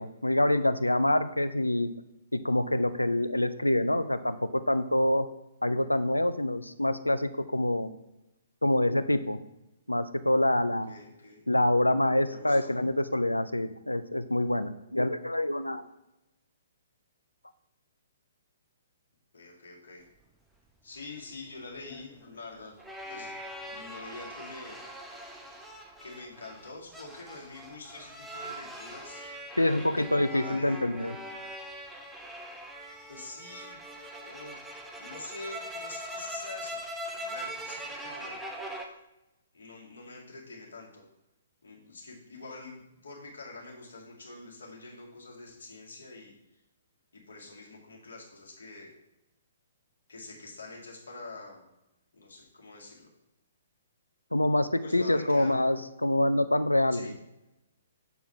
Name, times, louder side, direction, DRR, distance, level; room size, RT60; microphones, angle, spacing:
voice 1, 0.0-1.9 2.3-5.3 5.6-7.9 8.6-9.4 9.9-10.9 11.5-15.8 29.6-31.2 54.3-57.1, left 1 dB, 90° left, 12 dB, 0.5 m, -26 dB
voice 2, 10.7-11.5 12.3-12.8 19.3-20.0 20.8-22.8 23.1-23.3 23.7-24.8 26.0-29.3 29.5-30.8 33.1-33.8 34.2-34.6 35.0-36.8 37.2-38.4 38.7-38.9 39.5-41.0 41.6-46.3 47.1-48.9 50.1-51.6 52.1-53.1 54.8-55.6 56.9-57.1, left 3 dB, 65° left, -2 dB, 2.2 m, -46 dB
sound 1, 21.1-38.9, right 1 dB, 5° right, 0.8 m, -42 dB
6.7 x 4.6 x 5.6 m, 0.92 s
figure-of-eight pair, 120°, 0 cm